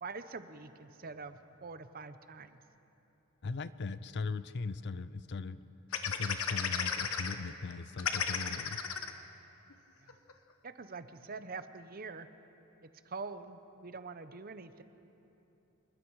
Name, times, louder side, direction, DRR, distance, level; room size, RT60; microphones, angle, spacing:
voice 1, 0.0-2.6 10.0-10.2 10.6-12.3 12.8-14.8, right 4 dB, 45° right, 11 dB, 0.8 m, -45 dB
voice 2, 3.4-5.6 6.1-8.8, left 4 dB, 55° left, 15 dB, 0.6 m, -39 dB
sound 1, 5.9-7.3 7.7-7.8 8.0-9.1 9.7-9.8 10.1-10.3, left 7 dB, 85° left, 1.2 m, -34 dB
27.0 x 21.0 x 4.8 m, 3.0 s
head